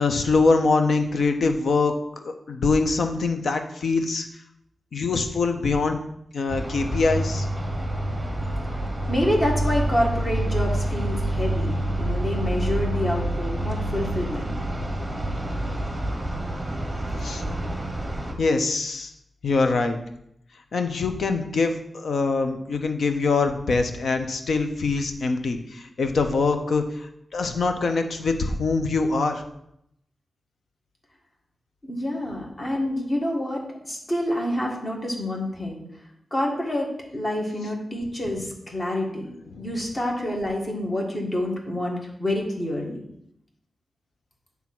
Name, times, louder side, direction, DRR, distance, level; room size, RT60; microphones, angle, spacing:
voice 1, 0.0-1.9 2.2-4.3 4.9-6.0 6.3-7.5 17.2-17.4 18.4-19.1 19.4-20.0 20.7-29.4 39.5-39.7, left 3 dB, 70° left, 6 dB, 0.8 m, -23 dB
sound 1, 6.5-18.3, right 1 dB, 10° right, 1.1 m, -27 dB
voice 2, 9.1-14.6 31.9-35.8 36.3-39.3 39.5-43.0, left 1 dB, 25° left, -1 dB, 1.7 m, -27 dB
8.6 x 3.6 x 6.0 m, 0.76 s
wide cardioid pair, 145°, 0 cm